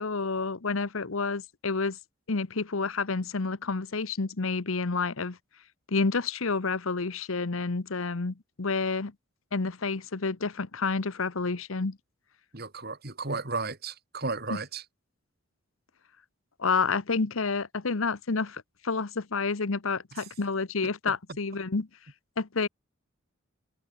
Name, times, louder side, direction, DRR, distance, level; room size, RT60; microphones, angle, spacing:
voice 1, 0.0-2.0 2.3-5.4 5.9-9.1 9.5-12.0 14.5-14.6 16.6-21.9 22.4-22.7, left 4 dB, 70° left, 1.0 m, -29 dB
voice 2, 12.5-14.8, right 3 dB, 45° right, 2.6 m, -34 dB
head